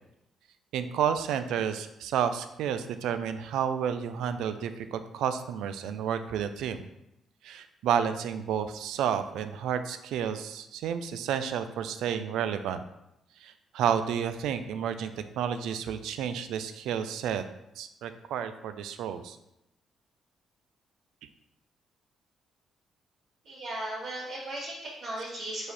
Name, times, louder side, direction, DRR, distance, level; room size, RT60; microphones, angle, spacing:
voice 1, 0.7-6.8 7.4-12.8 13.4-17.4 17.8-19.4, right 8 dB, 85° right, 10 dB, 0.3 m, -31 dB
voice 2, 23.4-25.7, right 1 dB, 65° right, -10 dB, 1.4 m, -36 dB
4.7 x 2.7 x 4.1 m, 0.85 s
cardioid pair, 90°, 0 cm